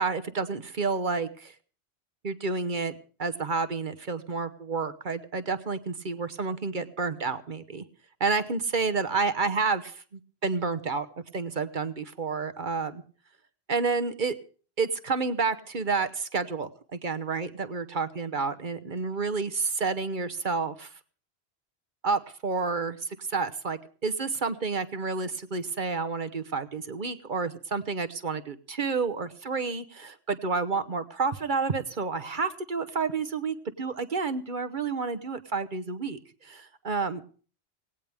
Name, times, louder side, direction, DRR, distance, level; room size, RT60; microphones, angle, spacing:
voice 1, 0.0-1.5 2.2-7.8 8.2-11.1 11.3-13.0 13.7-14.3 14.8-20.9 22.0-37.2, right 4 dB, 50° right, 12 dB, 1.2 m, -30 dB
18.0 x 17.5 x 3.5 m, 0.40 s
omnidirectional pair, 1.1 m